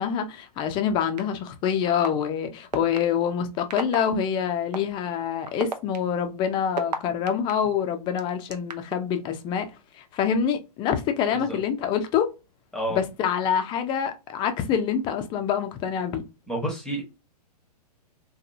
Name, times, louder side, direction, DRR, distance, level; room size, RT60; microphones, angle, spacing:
voice 1, 0.0-9.7 9.9-12.3 12.9-16.2, left 8 dB, 25° left, 0.4 m, -26 dB
sound 1, 1.2-1.3 2.0-2.1 2.7-3.0 3.7-4.0 4.7-4.8 5.5-7.5 8.2-9.0, right 4 dB, 90° right, 0.6 m, -30 dB
voice 2, 16.5-17.0, right 1 dB, 5° left, 0.9 m, -29 dB
2.8 x 2.3 x 2.5 m
hypercardioid pair, 115°, 21 cm